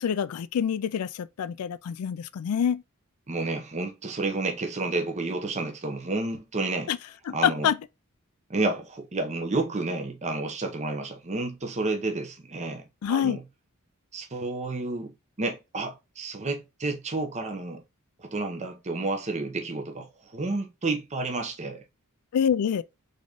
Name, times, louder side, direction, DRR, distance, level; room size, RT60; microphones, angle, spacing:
voice 1, 0.0-2.8 6.9-7.0 7.3-7.8 13.0-13.4 22.3-22.8, left 8 dB, 90° left, 0.4 m, -26 dB
voice 2, 3.3-6.9 7.3-7.7 8.5-13.4 14.1-17.8 18.2-21.8, right 2 dB, 30° right, 0.8 m, -30 dB
3.9 x 3.7 x 3.5 m
head